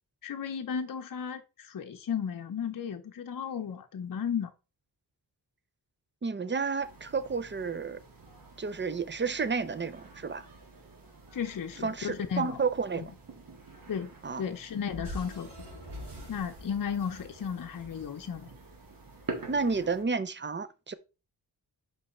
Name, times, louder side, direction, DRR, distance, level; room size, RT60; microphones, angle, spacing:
voice 1, 0.2-4.5 11.3-12.6 13.0-13.1 13.9-14.1 14.4-15.7 16.3-18.5, left 7 dB, 55° left, 0.7 m, -34 dB
voice 2, 6.2-8.0 8.6-10.5 11.8-13.1 14.2-14.4 19.5-20.9, right 5 dB, 30° right, 0.6 m, -31 dB
sound 1, 6.8-20.0, right 3 dB, 55° right, 1.9 m, -48 dB
sound 2, 14.9-19.3, left 1 dB, 75° right, 3.0 m, -45 dB
5.5 x 4.7 x 4.2 m
wide cardioid pair, 90°, 40 cm